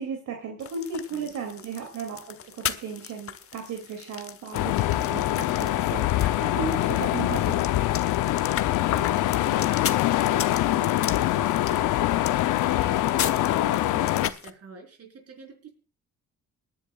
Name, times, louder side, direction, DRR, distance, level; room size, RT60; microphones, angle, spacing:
voice 1, 0.0-7.7, right 5 dB, 80° right, 2 dB, 2.7 m, -35 dB
sound 1, 0.6-14.5, left 8 dB, 50° left, 1.0 m, -38 dB
sound 2, 4.5-14.3, left 14 dB, 85° left, 0.7 m, -24 dB
voice 2, 8.8-12.0 12.6-15.7, right 4 dB, 55° right, 3 dB, 4.5 m, -45 dB
28.0 x 10.5 x 2.4 m, 0.33 s
cardioid pair, 90°, 30 cm